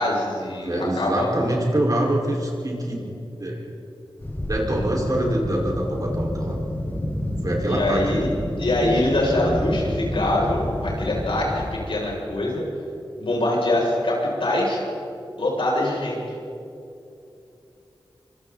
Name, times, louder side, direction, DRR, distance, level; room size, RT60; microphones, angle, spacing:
voice 1, 0.0-1.3 7.7-8.3 8.6-12.6 13.2-14.8 15.4-16.2, left 1 dB, 85° left, -4 dB, 7.2 m, -23 dB
voice 2, 0.6-3.7 4.4-6.6 7.4-8.2, right 1 dB, 45° right, -2 dB, 5.3 m, -25 dB
sound 1, 4.2-11.7, left 1 dB, 25° left, 5.6 m, -29 dB
28.5 x 25.0 x 4.3 m, 2.7 s
wide cardioid pair, 90°, 9 cm